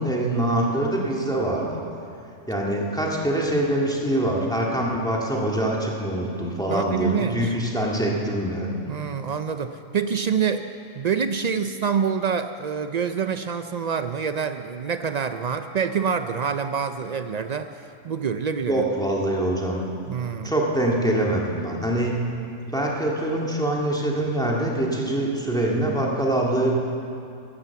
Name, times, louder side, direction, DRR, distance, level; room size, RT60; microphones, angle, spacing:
voice 1, 0.0-1.8 2.5-8.7 18.7-19.8 20.4-22.1 22.7-26.8, right 1 dB, 5° left, -3 dB, 1.8 m, -24 dB
voice 2, 6.7-7.5 8.9-10.6 10.9-17.7 18.0-18.8 20.1-20.5, right 6 dB, 75° right, 9 dB, 0.3 m, -26 dB
15.0 x 11.5 x 7.0 m, 2.6 s
omnidirectional pair, 1.3 m